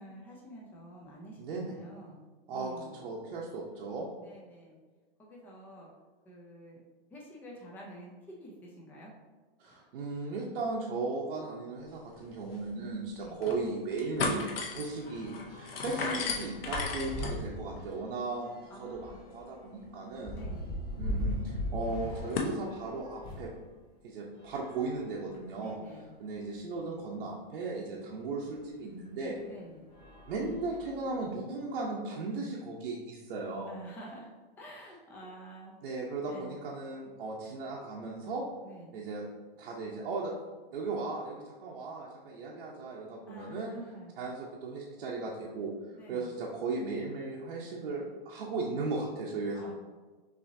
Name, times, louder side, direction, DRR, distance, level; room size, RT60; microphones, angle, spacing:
voice 1, 0.0-2.2 2.5-3.0 4.2-4.8 5.2-5.9 6.3-6.8 7.1-8.1 8.4-9.1 9.6-9.9 13.2-13.4 18.7-19.3 20.3-20.7 25.6-26.1 29.4-29.8 33.7-34.3 34.6-35.8 36.3-36.5 38.6-38.9 43.3-44.1 46.0-46.3 49.5-49.7, right 1 dB, 5° left, -3 dB, 0.4 m, -49 dB
voice 2, 1.4-1.7 2.5-4.1 9.6-14.4 14.7-20.4 21.0-23.5 24.0-25.8 26.2-29.4 30.3-33.8 35.8-38.4 38.9-39.2 39.6-40.3 40.7-43.7 44.2-45.7 46.1-49.7, right 3 dB, 75° right, -4 dB, 0.8 m, -36 dB
sound 1, 12.2-12.3 12.5-12.6 13.2-13.6 13.9-22.6, left 4 dB, 75° left, 0.9 m, -38 dB
sound 2, 13.1-13.3 13.7-13.8 14.1-23.6 24.3-25.6 26.3-26.4 26.7-26.8 28.5-28.6 29.2-29.4 29.9-31.1, left 1 dB, 30° left, 1.0 m, -40 dB
5.8 x 2.8 x 2.7 m, 1.3 s
hypercardioid pair, 150°, 29 cm